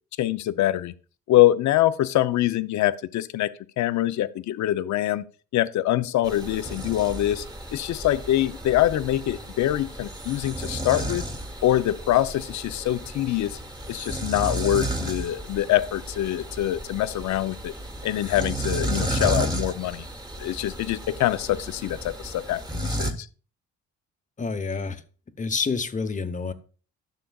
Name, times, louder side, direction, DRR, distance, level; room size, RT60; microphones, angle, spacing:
voice 1, 0.2-0.9 1.3-3.5 3.8-5.2 5.5-7.4 7.7-11.2 11.6-13.6 13.9-17.7 18.0-20.0 20.4-23.3, left 13 dB, 70° left, 0.6 m, -24 dB
sound 1, 6.2-23.1, right 1 dB, 15° right, 1.3 m, -33 dB
voice 2, 24.4-25.0 25.4-26.5, left 4 dB, 25° left, 0.9 m, -28 dB
13.0 x 6.6 x 2.3 m
cardioid pair, 90°, 30 cm